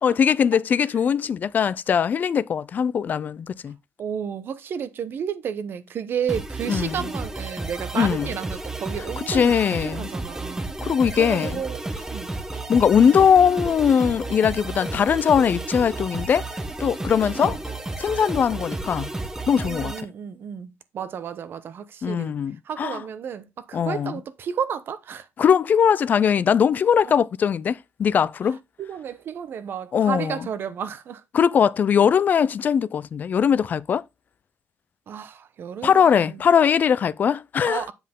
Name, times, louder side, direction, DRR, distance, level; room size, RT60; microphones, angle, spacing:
voice 1, 0.0-3.8 6.7-7.1 7.9-8.3 9.2-10.1 10.8-11.6 12.7-16.5 16.8-17.6 18.0-19.1 19.5-19.9 22.0-23.0 23.7-24.2 25.4-28.6 29.9-30.5 31.3-34.0 35.8-37.9, left 7 dB, 40° left, 0.4 m, -20 dB
voice 2, 4.0-9.5 9.8-10.9 11.2-12.3 17.4-17.6 19.6-22.4 22.6-25.3 27.0-27.1 28.8-31.2 35.1-36.4 37.6-37.9, right 8 dB, 50° right, 0.9 m, -32 dB
sound 1, 6.3-20.0, right 2 dB, 10° right, 1.0 m, -32 dB
sound 2, 11.4-18.3, left 2 dB, 10° left, 1.6 m, -45 dB
7.5 x 5.6 x 3.7 m
cardioid pair, 155°, 5 cm